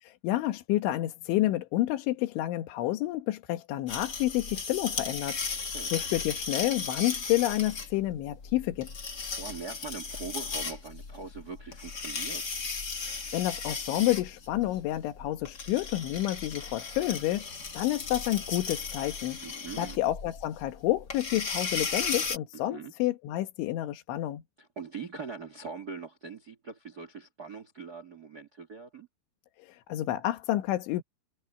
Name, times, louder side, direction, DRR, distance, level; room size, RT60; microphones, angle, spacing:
voice 1, 0.0-8.9 13.1-19.4 19.8-24.4 29.6-31.0, left 15 dB, 85° left, 3.8 m, -29 dB
sound 1, 3.9-22.4, left 4 dB, 35° left, 1.7 m, -36 dB
voice 2, 9.3-12.6 19.4-20.0 22.5-22.9 24.6-29.1, right 5 dB, 80° right, 0.8 m, -42 dB
omnidirectional pair, 5.3 m